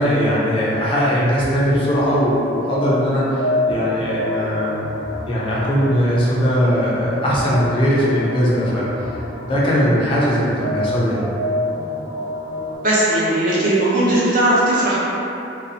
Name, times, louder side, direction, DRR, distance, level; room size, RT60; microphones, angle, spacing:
voice 1, 0.0-4.9 5.3-8.9 9.4-11.3, equal, 30° left, -7 dB, 0.3 m, -19 dB
sound 1, 2.7-12.8, left 1 dB, 65° right, 1.2 m, -28 dB
voice 2, 12.8-15.0, right 1 dB, 45° right, -8 dB, 0.5 m, -17 dB
2.6 x 2.0 x 2.6 m, 2.9 s
head